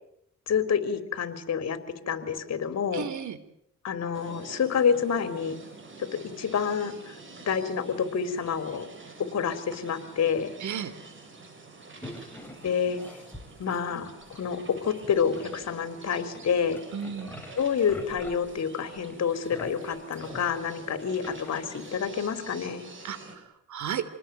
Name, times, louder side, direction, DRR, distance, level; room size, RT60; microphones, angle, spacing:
voice 1, 0.5-1.8 2.1-3.1 3.8-5.6 6.1-6.9 7.5-8.9 9.3-10.5 12.6-13.0 13.6-16.8 17.6-22.9, left 7 dB, 60° left, 10 dB, 3.6 m, -28 dB
voice 2, 2.9-3.4 10.6-10.9 16.9-17.4 23.0-24.0, right 8 dB, 70° right, 14 dB, 3.2 m, -34 dB
sound 1, 4.1-23.4, right 3 dB, 40° right, 7.6 m, -47 dB
sound 2, 12.0-14.4 14.7-16.0 16.3-21.9, left 1 dB, 5° left, 6.5 m, -46 dB
27.5 x 20.0 x 9.3 m, 0.77 s
cardioid pair, 90°, 30 cm